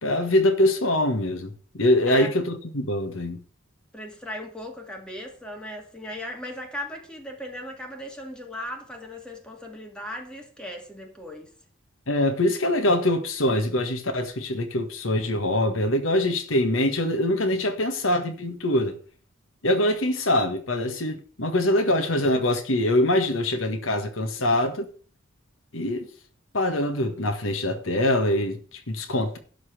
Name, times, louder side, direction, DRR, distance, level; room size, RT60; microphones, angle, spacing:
voice 1, 0.0-3.4 12.1-18.9 19.6-24.9 25.7-26.1 26.5-29.4, left 1 dB, 75° left, 1.6 m, -24 dB
voice 2, 3.9-11.5, left 1 dB, 5° left, 2.2 m, -37 dB
12.0 x 4.1 x 8.0 m
head